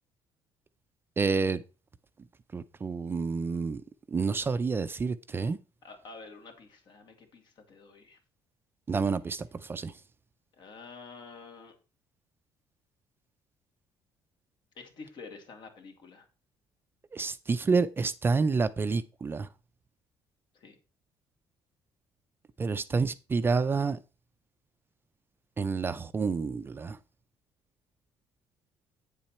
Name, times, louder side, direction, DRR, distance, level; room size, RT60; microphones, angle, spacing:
voice 1, 1.2-1.6 2.5-3.8 4.1-5.6 8.9-9.9 17.1-19.5 22.6-24.0 25.6-27.0, right 4 dB, 25° right, 0.5 m, -28 dB
voice 2, 5.8-8.2 10.6-11.7 14.7-16.3 20.5-20.8, left 4 dB, 55° left, 2.6 m, -48 dB
9.0 x 7.3 x 4.3 m
cardioid pair, 125°, 9 cm